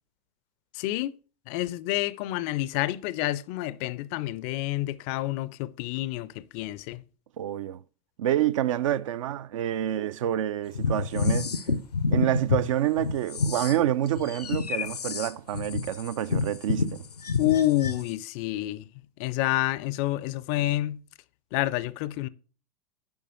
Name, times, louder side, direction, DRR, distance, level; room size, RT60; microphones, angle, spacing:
voice 1, 0.7-1.1 1.5-7.0 17.4-18.9 19.2-21.0 21.5-22.3, left 15 dB, 35° left, 0.4 m, -28 dB
voice 2, 7.4-7.8 8.2-11.5 12.1-17.0, right 11 dB, 55° right, 0.5 m, -27 dB
sound 1, 10.7-12.6 13.0-18.1, left 4 dB, 80° left, 0.6 m, -28 dB
7.0 x 4.8 x 6.3 m
figure-of-eight pair, 90°, 20 cm